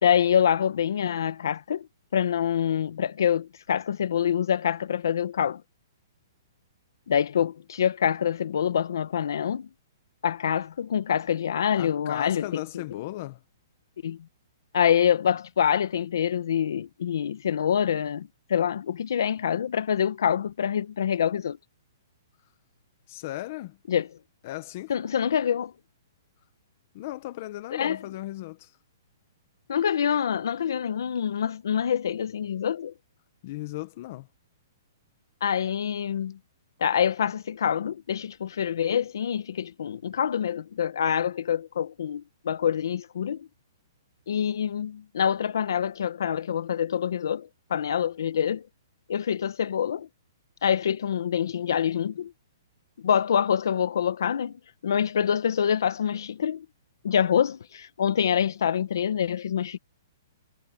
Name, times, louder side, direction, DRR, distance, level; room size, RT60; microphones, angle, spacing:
voice 1, 0.0-1.9 2.1-5.6 7.1-9.7 10.2-12.6 14.0-14.2 14.7-21.6 23.9-24.1 24.9-25.7 27.7-28.0 29.7-32.9 35.4-36.4 36.8-43.5 44.3-48.6 49.1-50.1 50.6-52.3 53.0-54.5 54.8-56.6 57.0-59.8, left 8 dB, 70° left, 1.0 m, -26 dB
voice 2, 11.7-13.4 23.1-23.8 24.4-24.9 26.9-28.7 33.4-34.3, left 17 dB, 35° left, 1.1 m, -36 dB
hypercardioid pair, 170°, 2 cm